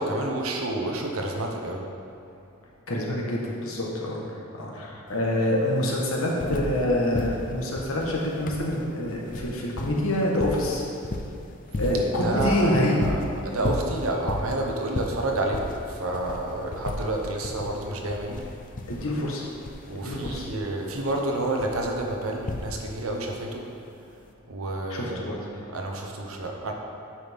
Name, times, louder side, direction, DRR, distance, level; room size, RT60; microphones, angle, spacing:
voice 1, 0.0-1.9 12.2-18.4 19.9-23.6 24.5-25.4 25.7-26.7, right 1 dB, 85° right, 1 dB, 1.0 m, -29 dB
voice 2, 2.9-4.2 4.6-10.8 11.8-13.0 18.9-19.4 20.0-20.5 24.9-25.4, left 1 dB, 80° left, -3 dB, 1.4 m, -26 dB
sound 1, 5.1-5.2 5.4-6.9 7.1-23.1 24.2-24.3, left 2 dB, 40° left, 0.5 m, -35 dB
9.0 x 5.9 x 3.6 m, 2.6 s
head